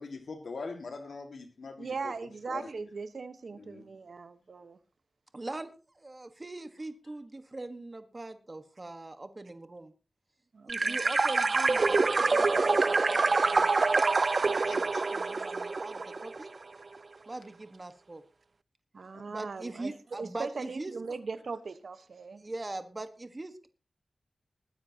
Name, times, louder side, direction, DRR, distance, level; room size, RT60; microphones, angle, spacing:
voice 1, 0.0-2.7 3.5-3.9 14.7-15.0 19.1-19.2, left 4 dB, 80° left, 1.9 m, -43 dB
voice 2, 1.8-4.8 10.5-11.0 18.9-19.9 20.2-22.4, right 4 dB, 70° right, 1.2 m, -39 dB
voice 3, 5.3-9.9 10.7-16.5 17.3-18.2 19.3-20.9 22.4-23.7, right 2 dB, 35° right, 1.4 m, -42 dB
sound 1, 10.7-16.4, right 3 dB, 55° right, 0.5 m, -26 dB
21.0 x 9.6 x 2.9 m
cardioid pair, 60°, 0 cm